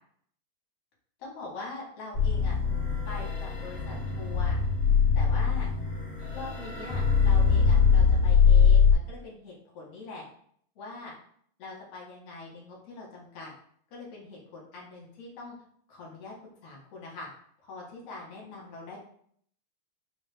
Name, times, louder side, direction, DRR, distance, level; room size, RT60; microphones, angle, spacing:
voice 1, 1.2-2.6 3.1-4.6 5.2-5.7 6.3-10.3 10.8-11.1 11.6-13.5 13.9-15.5 15.9-16.3 16.6-17.3 17.6-19.0, left 3 dB, 65° left, -3 dB, 1.8 m, -43 dB
sound 1, 2.1-8.9, left 6 dB, 30° left, 1.1 m, -22 dB
4.6 x 2.3 x 3.2 m, 0.62 s
omnidirectional pair, 3.4 m